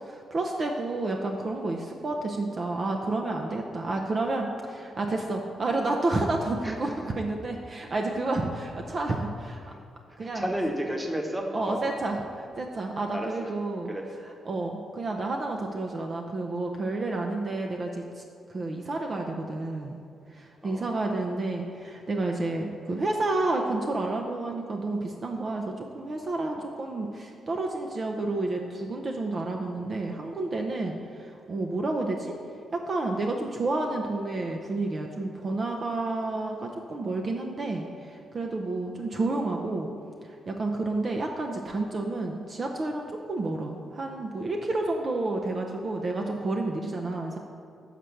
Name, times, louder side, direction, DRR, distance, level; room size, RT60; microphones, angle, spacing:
voice 1, 0.0-9.6 10.2-10.5 11.5-13.9 14.5-18.0 18.5-20.0 20.3-32.4 32.7-39.9 40.5-47.4, right 2 dB, 50° right, 2 dB, 0.6 m, -30 dB
voice 2, 6.6-7.0 9.6-9.8 10.2-11.9 13.1-13.5 13.9-14.1 20.6-20.8, equal, 15° right, 2 dB, 1.1 m, -32 dB
6.7 x 4.4 x 6.4 m, 2.5 s
cardioid pair, 65°, 0 cm